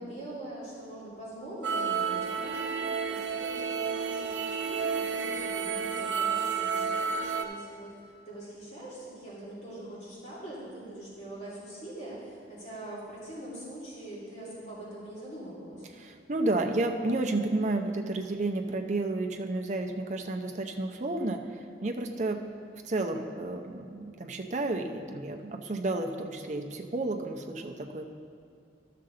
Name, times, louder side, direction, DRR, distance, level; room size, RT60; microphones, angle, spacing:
voice 1, 0.0-15.9, right 1 dB, 40° left, -9 dB, 2.6 m, -43 dB
sound 1, 1.6-7.5, right 6 dB, 85° right, 0.7 m, -31 dB
voice 2, 15.9-22.4 22.8-28.1, right 2 dB, 40° right, 3 dB, 0.6 m, -31 dB
12.0 x 6.7 x 3.8 m, 2.3 s
head